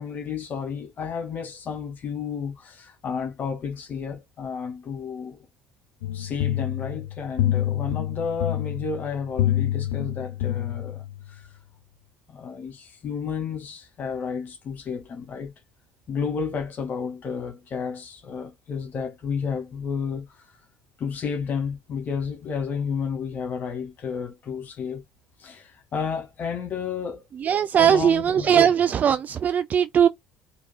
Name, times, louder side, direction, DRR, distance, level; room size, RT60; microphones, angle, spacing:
voice 1, 0.0-5.4 6.1-11.0 11.3-11.4 12.3-15.5 16.1-20.4 21.0-25.0 25.4-27.3 27.8-28.7, left 6 dB, 45° left, 2.1 m, -31 dB
sound 1, 6.0-11.3, left 13 dB, 80° left, 0.7 m, -27 dB
voice 2, 27.3-30.1, right 8 dB, 40° right, 0.4 m, -20 dB
4.5 x 3.1 x 2.3 m
hypercardioid pair, 70°, 4 cm